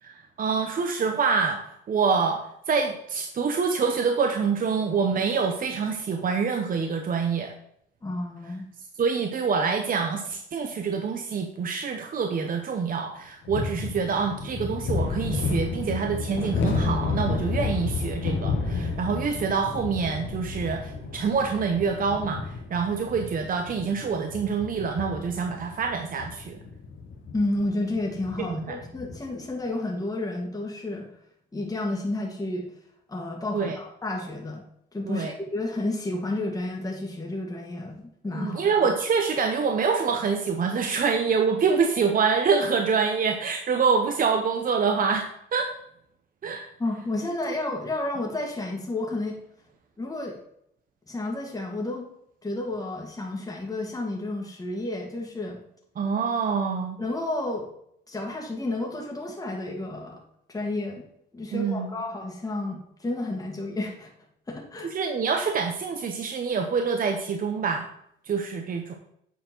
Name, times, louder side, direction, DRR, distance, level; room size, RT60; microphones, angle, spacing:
voice 1, 0.0-2.4 2.7-7.5 9.0-26.6 28.4-28.8 33.5-33.8 35.0-35.3 38.3-45.7 46.4-46.7 56.0-57.0 61.5-61.9 64.8-67.9 68.2-68.9, right 5 dB, 45° right, 4 dB, 0.8 m, -26 dB
voice 2, 8.0-8.7 27.3-31.1 31.5-32.7 33.1-34.6 34.9-38.7 46.8-49.4 50.0-50.4 51.1-52.1 52.4-55.6 57.0-57.7 58.1-60.2 60.5-61.0 61.3-64.1 64.5-64.9, left 2 dB, 20° left, -1 dB, 1.8 m, -31 dB
sound 1, 13.5-29.3, left 4 dB, 75° left, 1.3 m, -31 dB
8.2 x 4.4 x 4.4 m, 0.73 s
cardioid pair, 90°, 20 cm